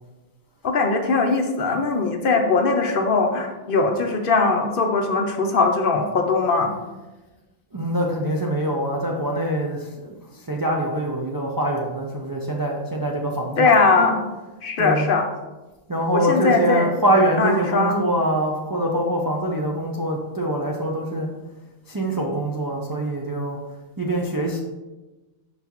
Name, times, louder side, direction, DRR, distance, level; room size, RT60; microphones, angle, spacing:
voice 1, 0.6-6.7 13.6-14.2 14.6-15.2 16.1-16.9 17.4-18.0, left 4 dB, 55° left, 4 dB, 0.7 m, -20 dB
voice 2, 7.7-14.1 14.8-15.1 15.9-21.3 21.9-23.6 24.0-24.6, right 1 dB, 30° right, -1 dB, 0.4 m, -24 dB
5.8 x 5.6 x 3.0 m, 1.1 s
omnidirectional pair, 1.2 m